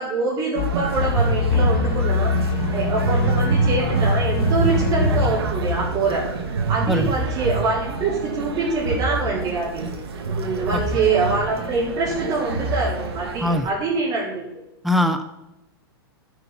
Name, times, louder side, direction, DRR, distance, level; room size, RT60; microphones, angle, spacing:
voice 1, 0.0-2.4 2.7-6.3 6.7-9.9 10.3-14.5, right 3 dB, 30° right, -9 dB, 3.8 m, -24 dB
sound 1, 0.5-13.6, right 3 dB, 85° right, 2.3 m, -25 dB
sound 2, 0.6-6.3, left 5 dB, 40° left, 1.7 m, -25 dB
voice 2, 14.8-15.3, left 1 dB, ahead, 8 dB, 0.8 m, -21 dB
13.5 x 7.9 x 5.9 m, 0.91 s
hypercardioid pair, 145°, 13 cm